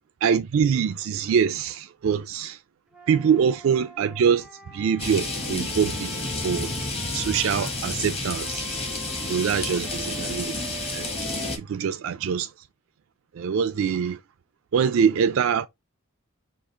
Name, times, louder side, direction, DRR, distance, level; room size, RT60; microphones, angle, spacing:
voice 1, 0.2-2.6 3.1-6.1 6.4-6.7 7.1-8.7 9.3-11.1 11.6-12.5 13.3-14.2 14.7-15.7, right 7 dB, 65° right, 0.3 m, -24 dB
Wind instrument woodwind instrument, 2.9-7.7 8.4-11.6, right 2 dB, 5° right, 0.5 m, -44 dB
sound 1, 5.0-11.6, left 2 dB, 25° left, 1.0 m, -30 dB
4.9 x 2.4 x 3.4 m
head